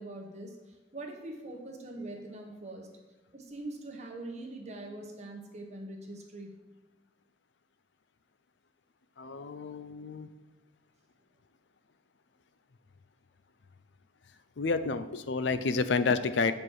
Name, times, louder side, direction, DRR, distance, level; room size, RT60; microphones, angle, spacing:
voice 1, 0.0-2.9 3.3-6.6, right 2 dB, 40° right, 0 dB, 1.4 m, -43 dB
voice 2, 9.2-10.3 14.6-16.5, left 4 dB, 80° left, 12 dB, 0.5 m, -29 dB
7.4 x 5.2 x 6.3 m, 1.1 s
head